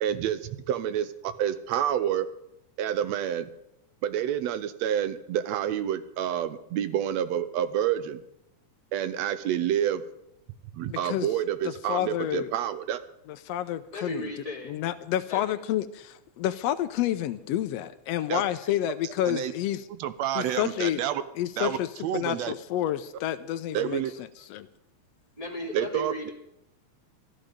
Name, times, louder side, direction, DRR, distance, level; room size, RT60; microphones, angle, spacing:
voice 1, 0.0-2.3 2.8-3.5 4.0-8.2 8.9-10.0 10.7-13.0 18.3-18.4 19.3-19.5 20.0-21.2 21.6-21.8 22.0-22.5 23.7-24.1 25.7-26.3, right 10 dB, 75° right, 13 dB, 1.7 m, -28 dB
voice 2, 10.9-11.3 11.6-12.5 13.3-14.3 14.7-19.9 20.3-21.0 21.3-24.7, left 12 dB, 85° left, 10 dB, 1.4 m, -29 dB
voice 3, 13.9-14.7 15.3-15.4 25.4-26.3, left 1 dB, 10° right, -4 dB, 2.3 m, -35 dB
14.0 x 13.0 x 5.1 m, 0.82 s
omnidirectional pair, 3.6 m